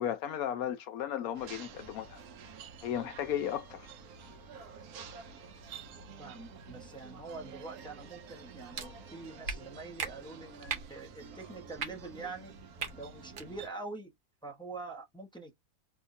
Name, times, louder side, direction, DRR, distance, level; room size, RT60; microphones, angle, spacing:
voice 1, 0.0-2.2 2.8-3.9, left 10 dB, 75° left, 1.1 m, -35 dB
sound 1, 1.3-13.7, right 5 dB, 85° right, 1.2 m, -49 dB
voice 2, 6.2-12.5 12.9-14.1 14.4-15.5, right 3 dB, 5° left, 0.5 m, -45 dB
sound 2, 8.7-8.9 9.4-9.6 10.0-10.1 10.7-10.9 11.7-11.9 12.8-12.9 13.3-13.5, right 6 dB, 65° right, 1.2 m, -36 dB
3.6 x 2.6 x 2.5 m
omnidirectional pair, 1.5 m